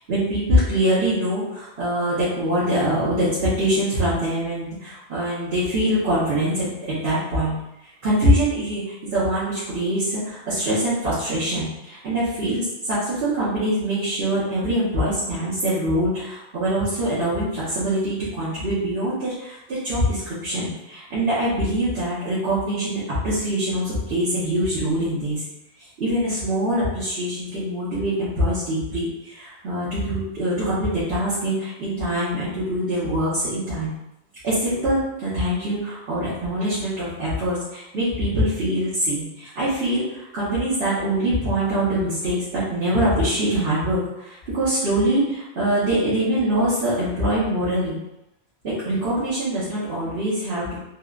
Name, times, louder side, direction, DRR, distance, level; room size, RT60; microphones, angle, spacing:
voice 1, 0.1-7.6 8.0-25.4 26.0-33.9 34.4-48.0 48.6-50.8, right 1 dB, 60° right, -11 dB, 1.1 m, -24 dB
3.1 x 2.1 x 2.3 m, 0.87 s
omnidirectional pair, 1.2 m